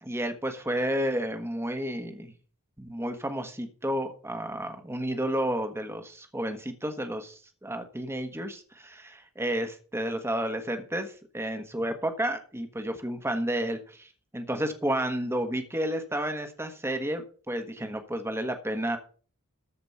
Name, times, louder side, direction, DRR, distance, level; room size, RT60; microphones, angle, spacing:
voice 1, 0.0-2.3 2.8-19.0, right 1 dB, 10° right, 6 dB, 1.4 m, -31 dB
14.0 x 5.1 x 7.0 m, 0.40 s
head